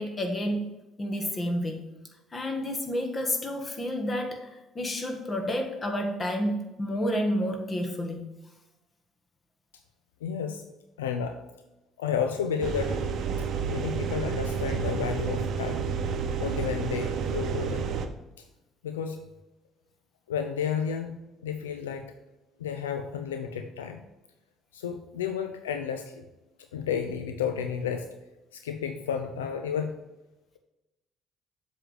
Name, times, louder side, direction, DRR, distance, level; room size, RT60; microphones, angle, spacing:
voice 1, 0.0-1.8 2.3-8.4, equal, 35° left, 4 dB, 1.4 m, -30 dB
voice 2, 10.2-10.6 11.0-11.4 12.0-13.0 13.7-15.8 16.4-17.8 18.8-19.2 20.3-21.2 21.4-22.1 22.6-24.0 24.7-26.1 26.7-28.1 28.5-30.0, left 7 dB, 85° left, 7 dB, 0.4 m, -31 dB
sound 1, 12.6-18.1, right 6 dB, 55° right, 0.7 m, -30 dB
7.5 x 3.3 x 6.3 m, 1.0 s
hypercardioid pair, 50°, 0 cm